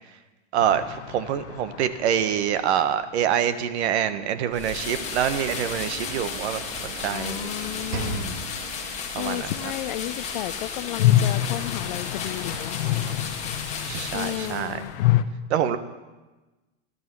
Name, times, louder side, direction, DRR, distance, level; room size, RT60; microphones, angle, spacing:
voice 1, 0.5-7.5 9.1-9.5 13.8-14.8 15.5-15.8, right 9 dB, 60° right, 11 dB, 1.3 m, -26 dB
sound 1, 0.6-4.4 4.6-4.7 4.9-5.0 10.0-15.2, left 13 dB, 65° left, 1.1 m, -27 dB
Sliding door / Slam, 4.2-9.0, right 3 dB, 45° right, 2.4 m, -38 dB
sound 2, 4.5-14.9, left 5 dB, 20° left, 2.0 m, -34 dB
voice 2, 7.1-8.4 9.2-12.8 14.1-15.2 15.7-15.8, left 14 dB, 40° left, 15 dB, 0.5 m, -33 dB
17.0 x 12.5 x 6.1 m, 1.2 s
supercardioid pair, 155°, 37 cm